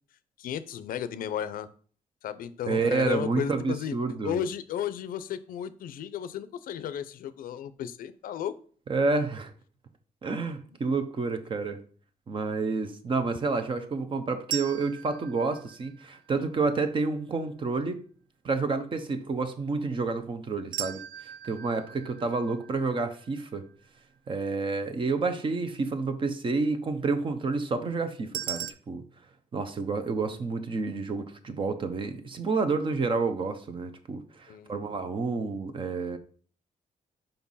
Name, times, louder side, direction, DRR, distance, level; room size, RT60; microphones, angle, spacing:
voice 1, 0.4-1.7 2.2-3.9 4.2-8.5 22.2-22.3 34.5-34.7, left 9 dB, 85° left, 13 dB, 0.6 m, -34 dB
voice 2, 2.7-4.4 8.9-9.5 10.2-11.8 12.3-18.0 18.4-23.6 24.3-29.0 29.5-36.2, right 4 dB, 35° right, 9 dB, 0.8 m, -29 dB
sound 1, 14.5-16.6 20.7-23.8 28.3-28.7, right 11 dB, 75° right, 0.5 m, -39 dB
5.3 x 4.5 x 5.5 m, 0.44 s
cardioid pair, 150°, 14 cm